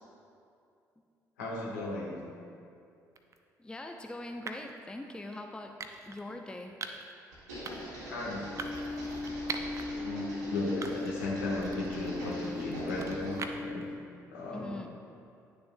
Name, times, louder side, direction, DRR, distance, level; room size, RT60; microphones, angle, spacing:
voice 1, 1.4-2.2 8.1-8.5 9.9-13.9 14.3-14.7, left 2 dB, 75° left, -4 dB, 1.3 m, -36 dB
sound 1, 3.2-3.4 4.5-4.8 5.8-6.2 6.8-7.1 7.6-8.0 8.6-9.9 10.3-10.4 10.8-11.3 11.6-13.8, right 4 dB, 35° right, 0.6 m, -42 dB
voice 2, 3.6-5.7 6.1-6.7 14.5-14.9, left 1 dB, 10° left, 3 dB, 0.6 m, -42 dB
sound 2, 7.3-13.5, equal, 80° right, 1.7 m, -44 dB
sound 3, 8.5-13.9, left 2 dB, 45° left, 1.5 m, -38 dB
10.0 x 6.8 x 2.2 m, 2.5 s
figure-of-eight pair, 45°, 9 cm